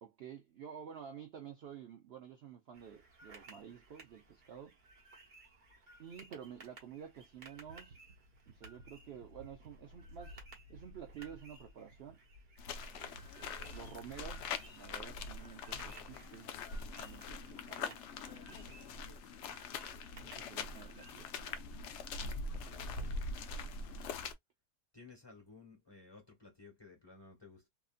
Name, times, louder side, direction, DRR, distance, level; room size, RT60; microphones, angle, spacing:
voice 1, 0.0-4.8 6.0-8.0 8.5-10.4 10.7-12.2 12.9-16.5 17.0-18.7 19.4-21.7 22.1-23.1, right 8 dB, 75° right, 0.5 m, -51 dB
sound 1, 2.7-21.2, right 3 dB, 35° right, 1.0 m, -60 dB
sound 2, 7.5-14.5, left 1 dB, 55° right, 1.5 m, -57 dB
sound 3, 12.6-24.3, left 4 dB, 80° left, 0.6 m, -43 dB
voice 2, 24.9-27.7, left 4 dB, 15° left, 1.1 m, -56 dB
2.9 x 2.5 x 2.4 m
omnidirectional pair, 1.7 m